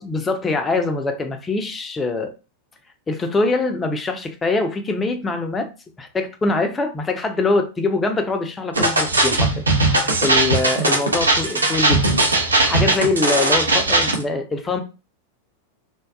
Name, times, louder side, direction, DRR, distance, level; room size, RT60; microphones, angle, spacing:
voice 1, 0.0-2.3 3.1-5.7 6.0-12.0 12.4-14.8, left 3 dB, 15° left, 0.4 m, -23 dB
sound 1, 8.7-14.2, right 2 dB, 75° right, 0.5 m, -18 dB
2.6 x 2.2 x 2.3 m
figure-of-eight pair, 90°, 0 cm